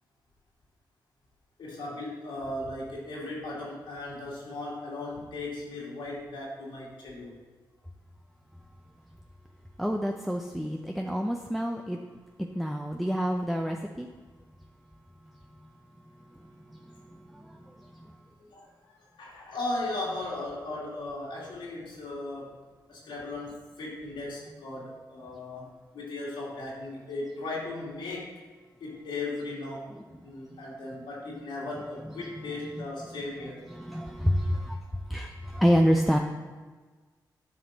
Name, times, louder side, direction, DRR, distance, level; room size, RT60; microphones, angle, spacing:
voice 1, 1.6-7.4 18.5-18.7 19.1-22.6 22.9-28.3 28.8-33.6, left 2 dB, 85° left, -5 dB, 2.4 m, -37 dB
voice 2, 9.8-12.0 12.5-14.1 17.3-17.6 33.7-34.8 35.1-36.2, equal, ahead, 3 dB, 0.6 m, -27 dB
9.3 x 5.1 x 4.0 m, 1.4 s
cardioid pair, 65°, 8 cm